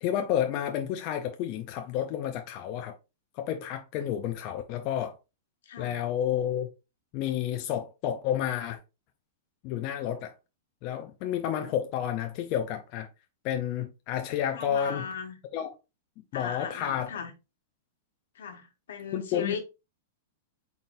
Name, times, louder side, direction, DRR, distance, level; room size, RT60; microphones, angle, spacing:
voice 1, 0.0-2.9 3.3-5.1 5.8-6.7 7.1-8.8 9.6-10.3 10.8-13.1 13.4-15.1 15.5-15.7 16.3-17.1 19.1-19.6, left 10 dB, 35° left, 0.4 m, -30 dB
voice 2, 5.6-6.0 14.5-15.4 16.3-17.3 18.3-19.6, left 7 dB, 80° left, 1.2 m, -37 dB
4.1 x 3.7 x 2.5 m
supercardioid pair, 165°, 0 cm